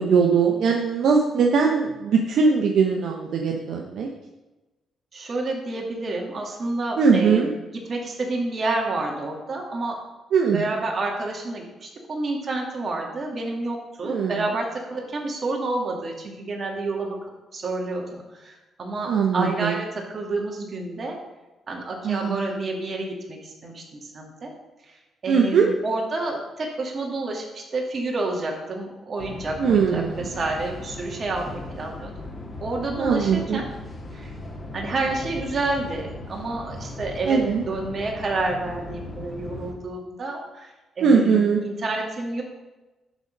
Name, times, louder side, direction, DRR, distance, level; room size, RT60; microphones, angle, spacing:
voice 1, 0.0-4.1 7.0-7.5 10.3-10.6 14.0-14.4 19.1-19.7 22.0-22.6 25.3-25.7 29.6-30.3 33.0-33.6 37.2-37.6 41.0-41.6, right 5 dB, 75° right, 1 dB, 0.8 m, -20 dB
voice 2, 5.1-7.5 7.9-10.0 10.5-21.2 21.7-24.5 24.8-25.0 25.2-32.1 32.6-33.6 34.1-34.3 34.7-42.4, right 2 dB, 45° right, 0 dB, 2.2 m, -29 dB
sound 1, 29.2-39.7, left 2 dB, 35° left, 1.7 m, -38 dB
11.5 x 4.0 x 5.2 m, 1.1 s
cardioid pair, 85°, 0 cm